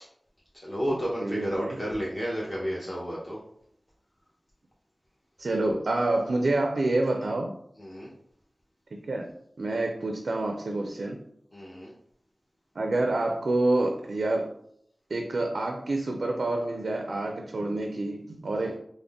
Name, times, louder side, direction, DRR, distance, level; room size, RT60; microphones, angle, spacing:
voice 1, 0.6-3.4 7.8-8.1 11.5-11.9 18.6-18.8, equal, 25° left, -6 dB, 0.9 m, -32 dB
voice 2, 1.2-1.8 5.4-7.5 9.0-9.3 9.6-11.2 12.8-14.5 15.1-18.8, right 2 dB, 80° right, 3 dB, 0.4 m, -27 dB
3.6 x 2.0 x 3.6 m, 0.70 s
wide cardioid pair, 45°, 0 cm